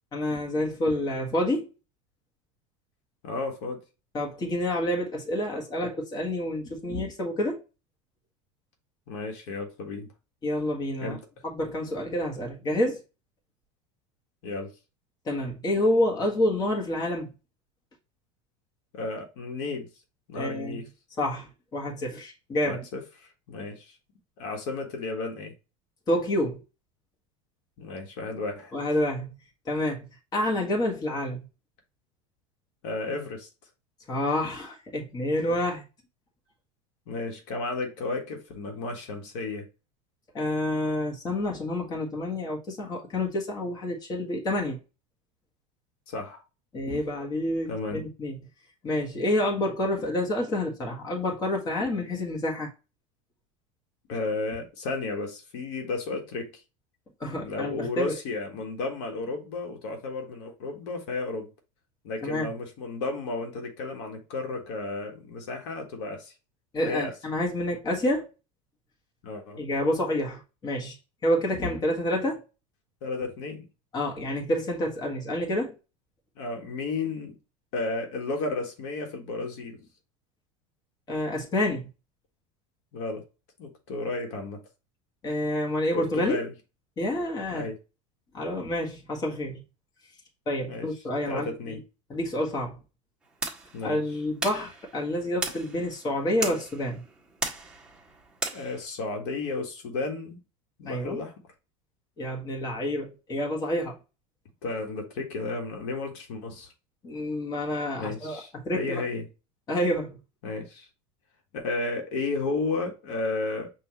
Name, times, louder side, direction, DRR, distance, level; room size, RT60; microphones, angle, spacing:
voice 1, 0.1-1.7 4.1-7.6 10.4-11.2 11.4-13.0 15.3-17.3 20.3-20.8 21.2-22.8 26.1-26.6 28.7-29.3 29.7-30.1 30.3-31.4 34.1-35.8 40.3-44.8 46.7-48.4 48.8-52.7 57.2-58.2 62.2-62.5 66.7-68.3 69.6-71.0 71.2-72.4 73.9-75.7 81.1-81.9 85.2-86.4 87.0-87.7 88.3-89.6 90.5-91.8 92.1-92.8 93.8-97.0 100.8-101.2 102.2-104.0 107.0-109.0 109.7-110.2, left 1 dB, 25° left, 1.5 m, -28 dB
voice 2, 3.2-3.8 9.1-10.1 11.0-11.2 14.4-14.7 18.9-19.9 20.3-20.9 22.6-23.9 24.4-25.5 27.8-28.7 32.8-33.5 37.1-39.7 46.1-46.4 47.7-48.0 54.1-56.6 57.4-61.5 62.0-66.3 66.8-67.1 69.2-69.6 73.0-73.7 76.4-77.4 77.7-79.9 82.9-83.2 83.6-84.6 85.9-86.5 87.5-87.8 90.7-90.9 91.3-91.8 92.1-92.2 93.7-94.2 98.5-100.4 100.8-101.3 104.6-106.7 108.0-109.3 110.4-110.9 111.5-113.7, left 3 dB, 70° left, 1.5 m, -33 dB
sound 1, 93.2-98.9, right 3 dB, 5° right, 1.6 m, -37 dB
5.8 x 2.7 x 3.0 m
supercardioid pair, 135°, 16 cm